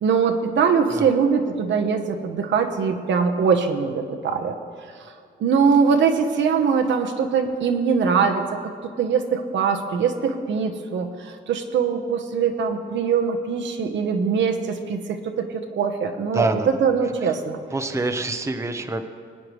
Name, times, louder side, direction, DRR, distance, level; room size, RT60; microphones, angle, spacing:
voice 1, 0.0-4.5 5.4-8.4 9.0-16.5 16.8-17.6, right 6 dB, 70° right, 5 dB, 1.0 m, -22 dB
voice 2, 16.3-16.7 17.7-19.1, right 2 dB, 15° right, 6 dB, 0.8 m, -25 dB
21.0 x 8.6 x 3.2 m, 2.3 s
cardioid pair, 90°, 20 cm